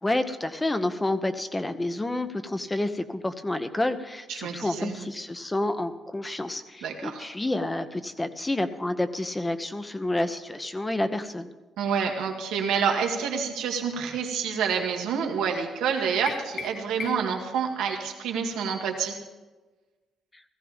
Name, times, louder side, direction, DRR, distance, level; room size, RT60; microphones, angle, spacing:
voice 1, 0.0-11.5, left 1 dB, 15° left, 9 dB, 1.0 m, -29 dB
voice 2, 4.3-5.0 6.8-7.2 11.8-19.2, right 6 dB, 90° right, 2 dB, 2.0 m, -28 dB
sound 1, 16.3-17.5, left 5 dB, 55° left, 0.9 m, -38 dB
17.0 x 14.5 x 3.6 m, 1.2 s
cardioid pair, 90°, 0 cm